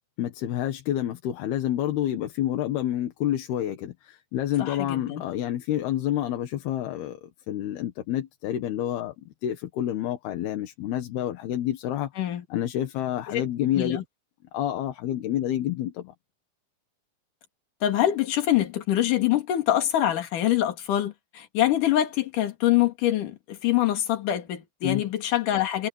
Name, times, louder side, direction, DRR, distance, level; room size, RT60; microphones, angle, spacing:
voice 1, 0.2-7.2 7.5-14.0 14.5-16.1 24.8-25.0, left 12 dB, 80° left, 3.5 m, -28 dB
voice 2, 4.6-5.2 12.2-12.4 13.3-13.4 13.8-14.0 17.8-25.9, left 12 dB, 60° left, 3.6 m, -25 dB
omnidirectional pair, 4.5 m